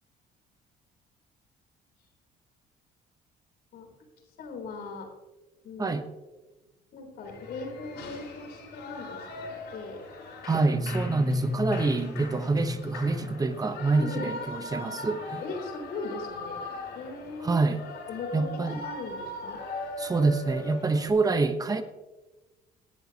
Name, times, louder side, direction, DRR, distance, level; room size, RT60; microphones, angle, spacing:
voice 1, 4.4-5.1 5.6-6.0 6.9-10.0 14.0-14.3 15.4-16.6 16.9-17.6 18.1-19.6, left 3 dB, 70° left, 3 dB, 3.6 m, -38 dB
Shout / Cheering, 7.2-21.1, left 2 dB, 85° left, 4.7 m, -40 dB
voice 2, 10.4-15.4 17.4-17.8 18.3-18.8 20.0-21.8, right 3 dB, 20° right, 9 dB, 1.0 m, -26 dB
sound 1, 10.6-14.3, left 2 dB, ahead, 1.2 m, -33 dB
18.0 x 10.5 x 2.9 m, 1.1 s
cardioid pair, 110°, 17 cm